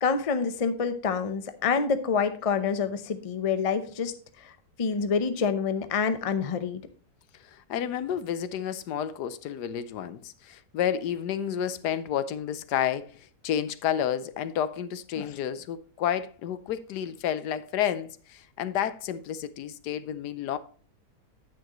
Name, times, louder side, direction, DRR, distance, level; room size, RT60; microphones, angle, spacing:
voice 1, 0.0-4.1 4.4-4.5 4.8-6.8 15.2-15.3, left 5 dB, 40° left, 0.5 m, -27 dB
voice 2, 7.4-20.6, left 9 dB, 80° left, 1.3 m, -30 dB
9.9 x 8.8 x 3.0 m
omnidirectional pair, 1.8 m